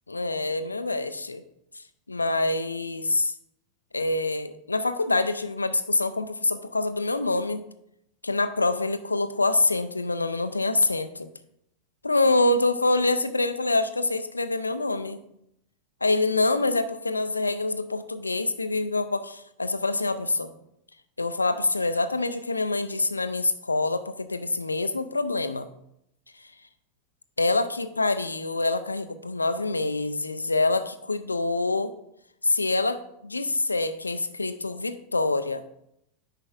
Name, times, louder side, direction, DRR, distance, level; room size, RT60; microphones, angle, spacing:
voice 1, 0.1-1.4 2.1-3.3 3.9-7.6 8.2-11.3 12.0-15.2 16.0-20.5 21.2-25.7 27.4-31.9 32.4-35.6, left 2 dB, 80° left, 12 dB, 0.4 m, -26 dB
10.0 x 5.7 x 2.4 m, 0.78 s
figure-of-eight pair, 90°, 0 cm